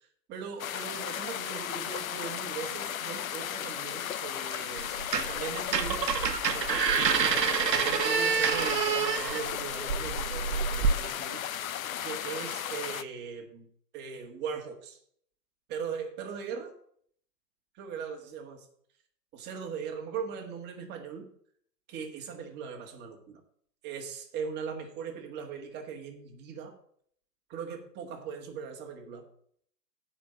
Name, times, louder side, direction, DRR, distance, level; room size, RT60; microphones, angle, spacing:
voice 1, 0.3-5.0 5.3-6.1 6.5-11.5 12.0-13.7 13.9-15.0 15.7-16.7 17.8-18.6 19.3-21.3 21.9-23.4 23.8-26.7 27.5-29.2, right 6 dB, 20° right, 3 dB, 1.7 m, -39 dB
sound 1, 0.6-13.0, left 10 dB, 55° left, 0.7 m, -35 dB
sound 2, 4.8-5.4 5.7-10.9, right 6 dB, 80° right, 1.2 m, -27 dB
8.1 x 5.6 x 7.5 m, 0.62 s
hypercardioid pair, 135°, 49 cm